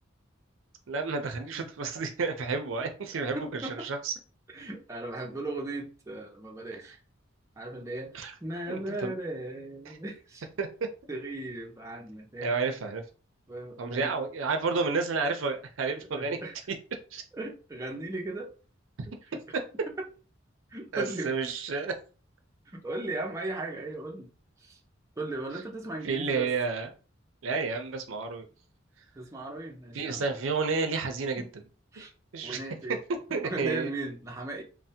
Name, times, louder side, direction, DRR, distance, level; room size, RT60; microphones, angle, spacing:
voice 1, 0.9-4.1 6.7-6.8 8.1-8.3 8.7-9.1 10.6-10.9 12.4-13.0 13.8-16.4 17.1-17.2 19.0-19.1 19.5-19.6 20.9-21.9 26.0-26.9 27.4-28.4 29.9-31.6 32.0-32.1 32.3-32.6 33.3-33.9, right 4 dB, 75° right, 6 dB, 0.5 m, -31 dB
voice 2, 3.4-3.9 4.5-7.0 7.6-8.1 8.4-10.5 11.1-12.8 13.5-14.1 16.1-16.5 17.3-18.5 19.1-19.4 20.7-21.3 22.7-24.3 24.6-24.8 25.2-26.5 29.2-30.3 31.4-31.5 31.9-32.1 32.4-33.0 33.4-34.6, right 2 dB, 15° right, 0 dB, 0.5 m, -37 dB
3.3 x 2.1 x 2.7 m, 0.36 s
head